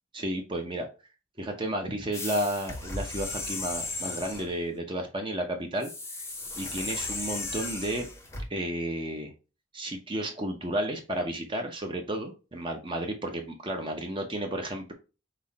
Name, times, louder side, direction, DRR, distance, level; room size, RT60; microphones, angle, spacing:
voice 1, 0.1-0.9 1.4-6.2 6.6-8.1 8.5-9.3 9.7-14.9, right 1 dB, 25° right, 4 dB, 0.7 m, -32 dB
sound 1, 2.1-4.5 5.8-8.5, left 2 dB, 15° left, 0.7 m, -36 dB
5.4 x 2.2 x 4.0 m, 0.31 s
head